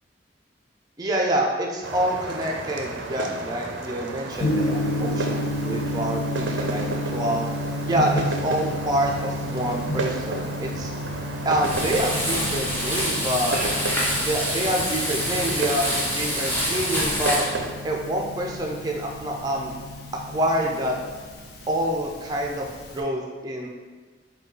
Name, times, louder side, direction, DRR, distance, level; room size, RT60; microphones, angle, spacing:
voice 1, 1.0-6.8 7.1-7.5 7.9-10.9 11.5-13.6 14.1-17.4 17.8-19.7 20.1-21.0 21.7-22.7 22.9-23.7, right 1 dB, 20° right, 0 dB, 0.4 m, -27 dB
sound 1, 1.8-17.7, right 2 dB, 90° right, 0.5 m, -33 dB
Gong, 4.3-23.0, left 1 dB, 60° left, 0.6 m, -32 dB
Frying (food), 11.6-17.5, equal, 10° left, 0.7 m, -26 dB
5.3 x 2.3 x 3.7 m, 1.4 s
head